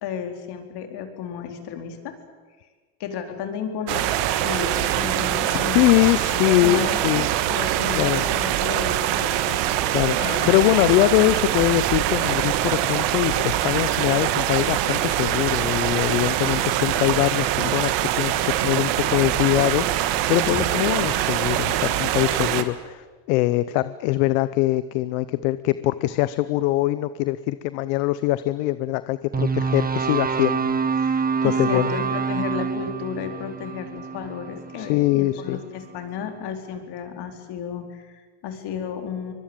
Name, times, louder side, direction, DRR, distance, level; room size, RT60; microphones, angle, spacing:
voice 1, 0.0-2.1 3.0-4.1 4.4-7.2 7.5-9.6 10.2-11.0 20.4-20.7 31.4-39.3, left 7 dB, 65° left, 5 dB, 4.3 m, -33 dB
sound 1, 3.9-22.6, right 12 dB, 75° right, 1.8 m, -23 dB
voice 2, 5.5-7.3 7.9-8.2 9.9-31.9 34.8-35.6, left 17 dB, 80° left, 15 dB, 0.9 m, -23 dB
sound 2, 29.3-35.6, right 5 dB, 20° right, 1.3 m, -26 dB
24.5 x 22.0 x 9.0 m, 1.4 s
supercardioid pair, 95°, 43 cm